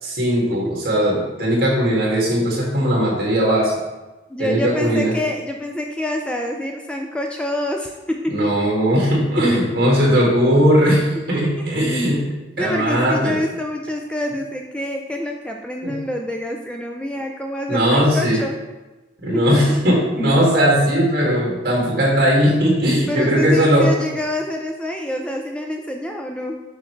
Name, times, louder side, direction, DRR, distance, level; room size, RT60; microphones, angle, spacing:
voice 1, 0.0-3.7 4.4-5.1 8.3-12.2 12.6-13.3 15.8-15.9 17.7-18.4 19.2-23.9, equal, 55° right, -4 dB, 2.2 m, -18 dB
voice 2, 4.3-7.9 8.4-8.5 9.7-9.8 10.8-10.9 12.6-18.6 19.7-20.0 23.1-26.6, left 1 dB, 5° left, 2 dB, 0.3 m, -26 dB
7.0 x 5.7 x 3.2 m, 1.1 s
head